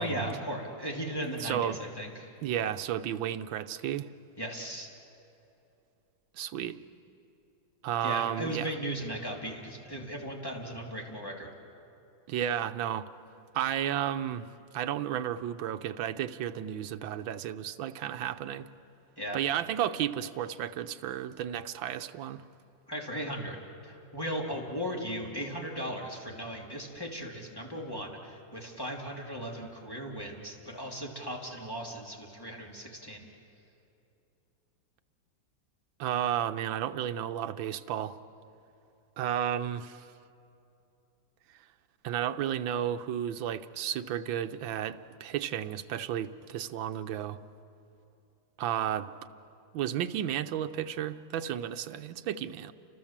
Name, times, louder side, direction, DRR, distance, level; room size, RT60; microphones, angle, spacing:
voice 1, 0.0-2.3 4.4-4.9 8.0-11.5 19.2-19.4 22.9-23.6 23.8-33.3, equal, 10° left, -1 dB, 3.0 m, -37 dB
voice 2, 1.4-1.8 2.4-4.1 6.3-6.8 7.8-8.7 12.3-13.1 13.5-18.7 19.3-22.4 36.0-38.2 39.2-40.1 42.0-47.4 48.6-49.1 49.7-52.7, right 10 dB, 80° right, 10 dB, 1.6 m, -32 dB
30.0 x 25.5 x 7.4 m, 2.7 s
omnidirectional pair, 2.1 m